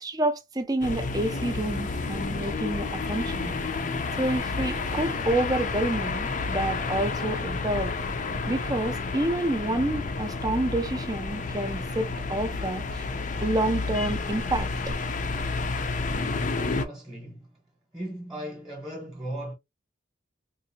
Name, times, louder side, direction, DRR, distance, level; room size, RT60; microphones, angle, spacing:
voice 1, 0.0-3.6 4.2-8.0 8.5-13.0 13.4-14.9, right 1 dB, 20° right, 0.5 m, -28 dB
sound 1, 0.8-16.9, left 3 dB, 40° left, 0.4 m, -30 dB
voice 2, 16.7-17.6 17.9-19.5, right 1 dB, ahead, 0.9 m, -37 dB
3.8 x 2.5 x 2.7 m
head